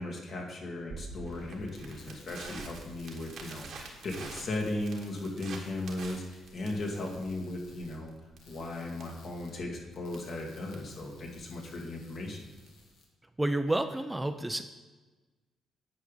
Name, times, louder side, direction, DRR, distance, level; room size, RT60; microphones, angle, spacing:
voice 1, 0.0-8.1 8.5-12.5, left 2 dB, 55° left, 0 dB, 1.8 m, -37 dB
Crackle, 0.9-12.9, right 4 dB, 70° right, 1.4 m, -47 dB
sound 1, 1.6-13.1, left 3 dB, 85° left, 1.4 m, -60 dB
voice 2, 13.4-14.6, right 1 dB, 10° right, 8 dB, 0.5 m, -29 dB
9.1 x 4.9 x 5.2 m, 1.2 s
supercardioid pair, 70°, 0 cm